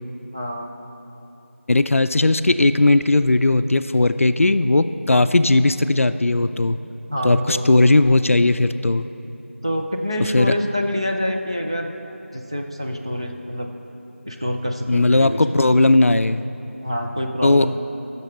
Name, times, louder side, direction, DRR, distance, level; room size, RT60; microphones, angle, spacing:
voice 1, 0.3-0.7 7.1-7.8 9.6-11.9 12.3-13.7 14.2-15.6 16.8-17.8, equal, 25° right, 1 dB, 0.4 m, -26 dB
voice 2, 1.7-6.8 7.2-9.1 10.3-10.5 14.9-16.4 17.4-17.7, left 2 dB, 75° left, 12 dB, 0.4 m, -17 dB
16.5 x 6.6 x 3.3 m, 3.0 s
figure-of-eight pair, 175°, 7 cm